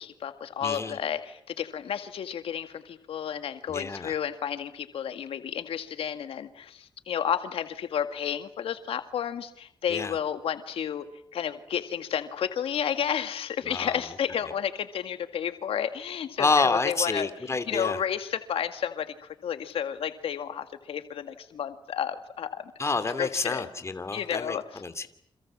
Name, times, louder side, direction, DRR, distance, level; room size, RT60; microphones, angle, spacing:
voice 1, 0.0-11.1 11.3-17.3 17.7-22.7 23.2-23.7 24.1-24.6, left 8 dB, 85° left, 9 dB, 2.0 m, -31 dB
voice 2, 0.6-1.0 3.7-4.1 9.9-10.2 13.6-14.0 16.4-18.0 22.8-25.1, left 3 dB, 30° left, 10 dB, 2.8 m, -28 dB
29.5 x 27.0 x 7.5 m, 0.67 s
cardioid pair, 95°, 9 cm